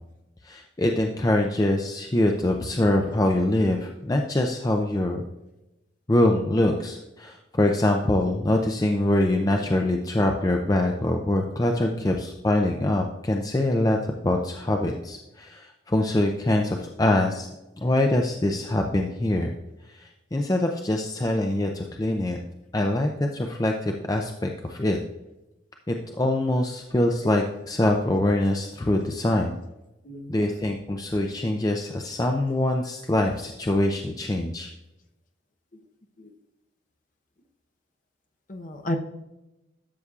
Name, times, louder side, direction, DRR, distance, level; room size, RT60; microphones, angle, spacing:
voice 1, 0.4-5.2 6.1-14.0 14.2-17.5 17.8-19.5 19.9-22.4 22.7-25.0 25.9-29.5 30.3-34.7, left 1 dB, 20° left, 2 dB, 0.5 m, -24 dB
voice 2, 30.0-30.6 36.2-36.3 38.5-39.0, left 1 dB, 40° left, 5 dB, 0.8 m, -33 dB
12.5 x 6.9 x 2.4 m, 0.95 s
head